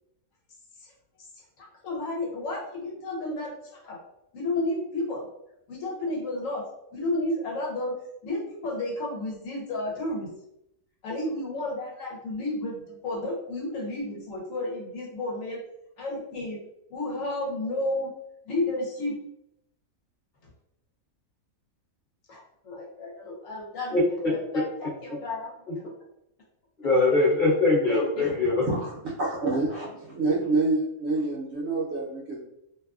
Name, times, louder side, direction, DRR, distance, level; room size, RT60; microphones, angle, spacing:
voice 1, 1.6-3.5 3.8-4.0 4.3-5.3 5.7-6.6 6.9-7.9 8.2-10.3 11.0-15.6 16.0-16.6 16.9-18.1 18.5-19.2 22.3-25.9 27.9-28.3, left 2 dB, 70° left, -3 dB, 1.1 m, -32 dB
voice 2, 23.9-24.3 26.8-28.6, left 2 dB, 40° left, -5 dB, 0.9 m, -22 dB
voice 3, 28.6-32.4, right 3 dB, 60° right, -5 dB, 0.9 m, -27 dB
2.6 x 2.3 x 2.3 m, 0.80 s
omnidirectional pair, 1.4 m